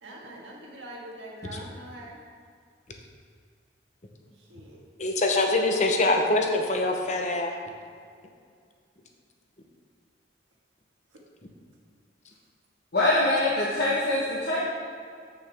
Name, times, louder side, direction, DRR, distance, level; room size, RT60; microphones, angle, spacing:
voice 1, 0.0-2.2 4.5-4.8 5.3-6.1, right 1 dB, 85° right, -3 dB, 1.7 m, -43 dB
voice 2, 5.0-7.6, left 2 dB, 40° left, 3 dB, 0.7 m, -24 dB
voice 3, 12.9-14.6, left 2 dB, 60° left, -7 dB, 1.2 m, -24 dB
7.9 x 6.8 x 3.5 m, 2.2 s
head